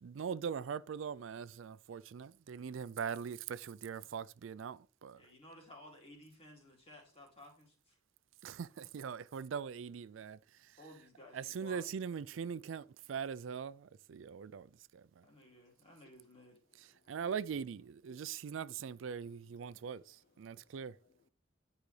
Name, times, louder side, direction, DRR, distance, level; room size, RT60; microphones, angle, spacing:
voice 1, 0.0-5.2 8.4-10.8 11.3-15.3 17.1-21.0, right 7 dB, 75° right, 0.4 m, -42 dB
voice 2, 5.1-8.0 10.8-11.9 15.2-16.6, equal, 30° left, 2.5 m, -56 dB
voice 3, 15.6-16.1 16.7-17.2 18.1-21.3, left 5 dB, 50° left, 0.5 m, -72 dB
10.5 x 5.0 x 3.2 m
head